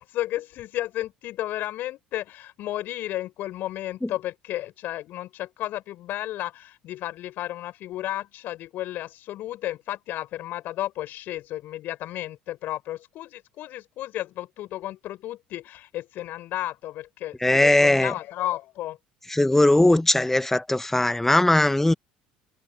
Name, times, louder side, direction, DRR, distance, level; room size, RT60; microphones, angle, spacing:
voice 1, 0.0-19.0, left 14 dB, 55° left, 4.8 m, -33 dB
voice 2, 17.4-18.1 19.3-21.9, left 1 dB, 10° left, 1.2 m, -19 dB
figure-of-eight pair, 65°, 4 cm